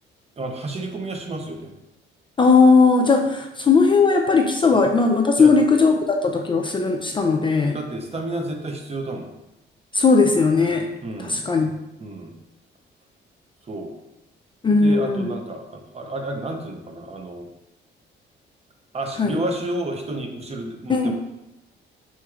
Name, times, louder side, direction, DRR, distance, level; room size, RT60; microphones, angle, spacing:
voice 1, 0.4-1.7 4.7-4.8 5.4-5.7 7.7-9.3 11.0-11.4 12.0-12.4 13.7-13.9 14.7-17.5 18.9-21.1, right 1 dB, 30° right, 3 dB, 0.7 m, -31 dB
voice 2, 2.4-7.8 9.9-10.9 11.2-11.7 14.6-15.3 19.2-19.4 20.9-21.1, left 4 dB, 25° left, 2 dB, 0.4 m, -18 dB
5.7 x 3.1 x 2.4 m, 0.92 s
cardioid pair, 90°, 20 cm